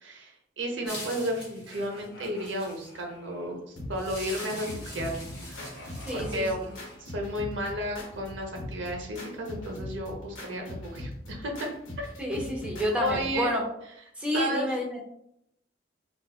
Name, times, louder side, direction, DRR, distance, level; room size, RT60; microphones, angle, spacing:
voice 1, 0.0-5.1 5.5-11.7 12.0-12.1 12.9-13.5 14.3-14.7, equal, 70° right, 2 dB, 0.7 m, -33 dB
sound 1, 0.8-3.5 4.5-7.1, equal, 50° left, 0.7 m, -47 dB
sound 2, 0.9-3.0 4.0-6.9, left 1 dB, 30° left, 1.4 m, -44 dB
sound 3, 3.8-13.4, left 1 dB, 75° left, 1.0 m, -41 dB
voice 2, 6.0-6.5 12.2-13.6 14.2-15.0, left 1 dB, 5° right, -2 dB, 0.5 m, -29 dB
3.8 x 2.4 x 2.3 m, 0.77 s
head